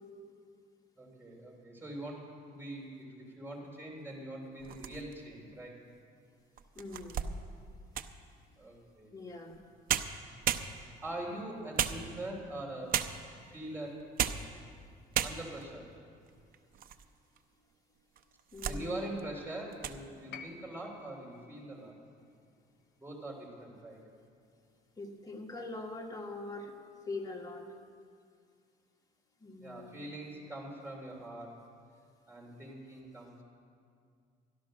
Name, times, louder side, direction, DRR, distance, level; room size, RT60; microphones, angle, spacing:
voice 1, 1.0-2.2 2.5-5.7 8.6-9.2 9.5-9.6 11.0-13.0 13.5-14.0 15.2-15.9 18.6-21.9 23.0-24.1 29.6-31.5 32.3-33.4, right 1 dB, 15° right, -2 dB, 3.1 m, -43 dB
sound 1, 4.6-5.3 5.9-6.0 6.6-8.3 9.5-9.6 9.9-11.1 11.8-12.5 12.9-13.4 14.0-14.5 14.8-14.9 15.1-15.7 16.3-17.1 17.4-17.5 18.2-18.8 19.2-19.4 19.7-20.0, right 9 dB, 60° right, 0.6 m, -34 dB
voice 2, 6.7-7.3 9.1-9.5 18.5-19.1 25.0-26.7 27.0-27.7 29.4-30.1, left 3 dB, 20° left, 1 dB, 1.6 m, -43 dB
sound 2, 20.3-24.5 25.7-25.8, left 6 dB, 85° left, 0.7 m, -53 dB
12.5 x 12.0 x 6.4 m, 2.3 s
cardioid pair, 110°, 17 cm